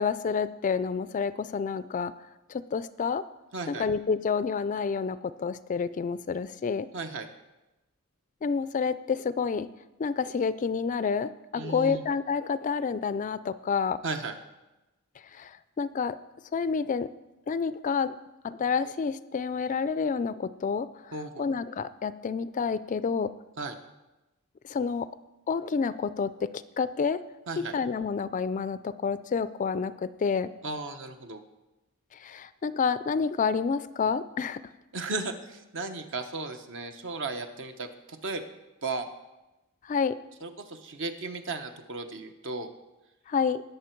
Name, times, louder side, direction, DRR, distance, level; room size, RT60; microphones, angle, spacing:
voice 1, 0.0-2.1 2.5-3.2 3.7-6.9 8.4-9.7 10.0-14.0 15.4-15.5 15.8-16.2 16.5-17.1 17.5-18.1 18.4-20.9 21.4-23.3 24.7-25.1 25.5-26.5 26.8-27.2 27.6-30.5 32.2-34.6 39.9-40.2 43.3-43.6, left 5 dB, 35° left, 15 dB, 0.3 m, -29 dB
voice 2, 3.5-3.8 6.9-7.3 11.5-12.0 14.0-14.3 21.1-21.5 23.6-23.8 27.5-27.7 30.6-31.4 34.9-38.4 38.8-39.0 40.4-42.7, right 3 dB, 60° right, 7 dB, 0.9 m, -35 dB
19.5 x 6.8 x 4.5 m, 1.0 s
head